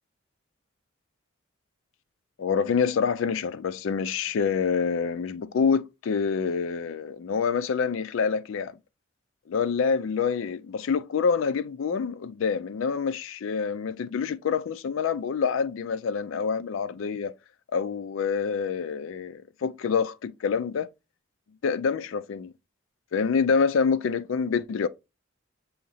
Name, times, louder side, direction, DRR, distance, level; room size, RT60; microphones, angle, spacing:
voice 1, 2.4-8.7 9.5-17.3 17.7-20.9 21.6-22.5 23.1-24.9, left 6 dB, 80° left, 0.4 m, -26 dB
6.2 x 2.8 x 2.7 m
head